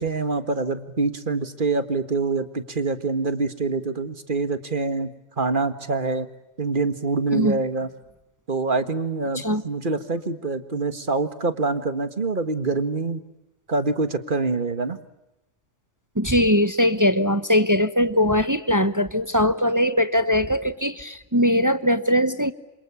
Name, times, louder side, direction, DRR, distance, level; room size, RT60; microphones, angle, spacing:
voice 1, 0.0-5.1 5.4-6.3 6.6-7.9 8.5-13.2 13.7-15.0, right 3 dB, 45° right, 10 dB, 1.8 m, -25 dB
voice 2, 16.2-22.5, equal, 15° right, 11 dB, 0.9 m, -21 dB
27.5 x 27.0 x 7.0 m, 0.94 s
omnidirectional pair, 1.2 m